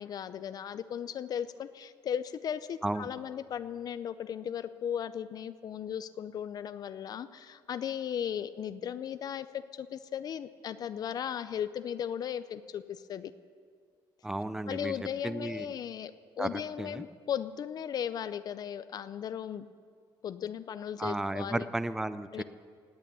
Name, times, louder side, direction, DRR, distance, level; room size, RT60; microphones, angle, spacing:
voice 1, 0.0-13.3 14.7-19.7 20.2-21.7 22.3-22.4, left 9 dB, 50° left, 13 dB, 0.5 m, -36 dB
voice 2, 14.2-14.9 15.2-15.7 16.4-17.0 21.0-22.4, right 1 dB, 5° right, 13 dB, 0.4 m, -34 dB
18.0 x 8.4 x 8.4 m, 2.1 s
cardioid pair, 130°, 9 cm